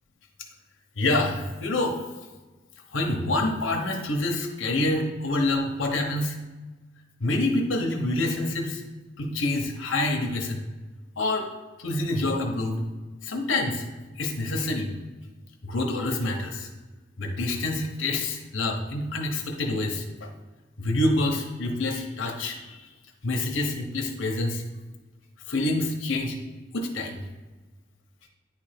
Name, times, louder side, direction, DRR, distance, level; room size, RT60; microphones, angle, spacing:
voice 1, 1.0-2.0 2.9-6.4 7.2-8.8 9.2-10.6 11.2-11.5 11.8-12.8 13.2-13.9 14.2-14.9 15.6-16.7 17.2-20.3 20.8-22.8 23.2-24.6 25.5-26.4 26.7-27.2, left 2 dB, 85° left, 2 dB, 1.0 m, -27 dB
9.5 x 3.4 x 5.0 m, 1.2 s
head